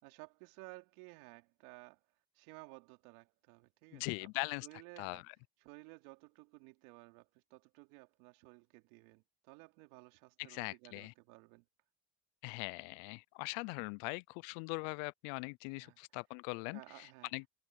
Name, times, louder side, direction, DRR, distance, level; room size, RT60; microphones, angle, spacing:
voice 1, 0.0-2.0 2.3-4.3 4.6-5.2 5.6-11.6 15.8-16.0 16.7-17.3, right 27 dB, 85° right, 3.4 m, -56 dB
voice 2, 3.9-4.7 5.0-5.2 10.4-11.1 12.4-17.5, left 31 dB, 80° left, 0.6 m, -41 dB
hypercardioid pair, 65°, 42 cm